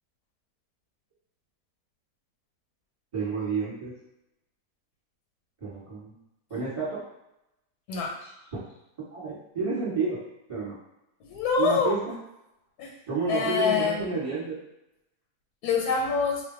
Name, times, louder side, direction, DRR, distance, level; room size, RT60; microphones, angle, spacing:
voice 1, 3.1-3.9 5.6-6.2 6.5-7.0 8.5-8.6 9.1-10.2 10.5-10.7 11.6-12.1 13.1-14.6, right 4 dB, 25° right, -9 dB, 1.1 m, -30 dB
voice 2, 7.9-8.3 11.2-12.0 12.8-12.9 13.3-14.1 15.6-16.4, left 5 dB, 85° left, 0 dB, 1.1 m, -26 dB
2.4 x 2.2 x 3.7 m, 0.88 s
omnidirectional pair, 1.6 m